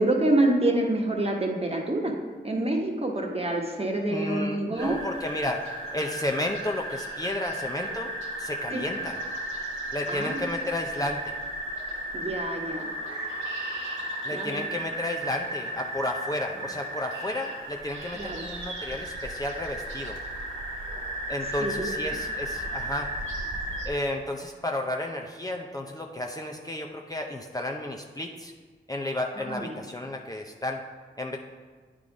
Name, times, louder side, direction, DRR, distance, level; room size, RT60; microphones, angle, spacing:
voice 1, 0.0-2.1 2.4-5.0 8.7-8.8 10.1-10.4 12.1-12.9 14.3-14.6 18.1-18.4 21.6-21.9 29.5-29.7, right 1 dB, 30° right, 0 dB, 1.2 m, -27 dB
voice 2, 4.1-5.6 5.9-8.1 8.4-9.2 9.9-11.3 14.2-20.2 21.3-23.1 23.8-28.5 28.9-30.8 31.2-31.4, left 1 dB, 20° left, 1 dB, 0.6 m, -32 dB
sound 1, 4.8-23.9, right 1 dB, 80° right, 1.5 m, -34 dB
9.3 x 3.7 x 4.9 m, 1.5 s
cardioid pair, 40°, 20 cm